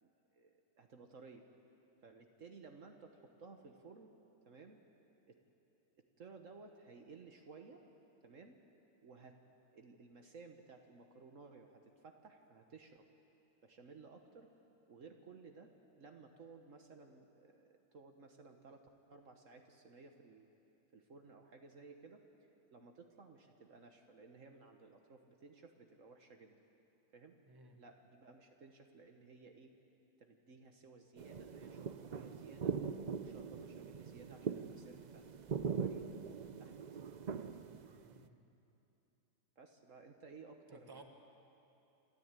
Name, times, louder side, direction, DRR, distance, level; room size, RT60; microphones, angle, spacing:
voice 1, 0.0-1.4 2.0-4.1 4.5-4.8 5.3-5.4 6.2-7.8 8.2-8.6 9.0-9.4 9.7-13.1 13.6-14.5 14.9-20.5 20.9-22.2 22.7-26.6 27.1-27.4 27.8-29.7 30.2-32.8 33.2-36.0 36.6-36.8 39.6-41.0, right 4 dB, 60° right, 4 dB, 1.5 m, -57 dB
voice 2, 27.5-27.8 37.6-38.4 40.7-41.0, right 3 dB, 15° right, 3 dB, 1.5 m, -58 dB
sound 1, 31.2-38.3, right 6 dB, 75° right, 0.4 m, -42 dB
28.0 x 13.5 x 9.0 m, 2.9 s
omnidirectional pair, 1.6 m